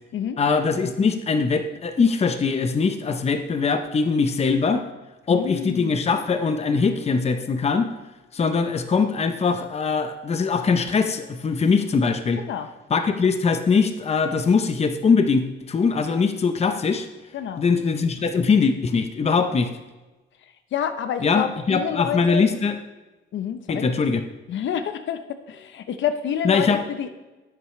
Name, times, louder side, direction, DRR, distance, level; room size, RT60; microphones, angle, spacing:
voice 1, 0.4-4.8 5.3-7.9 8.3-12.4 12.9-17.1 17.6-19.7 21.2-22.8 23.7-24.2 26.4-26.8, left 5 dB, 30° left, 7 dB, 0.8 m, -21 dB
voice 2, 5.3-6.0 12.4-12.7 17.3-17.6 20.7-22.5 23.3-23.9 24.5-25.2 25.5-27.1, left 9 dB, 70° left, 10 dB, 0.8 m, -28 dB
10.5 x 8.4 x 3.2 m, 1.1 s
cardioid pair, 90°, 20 cm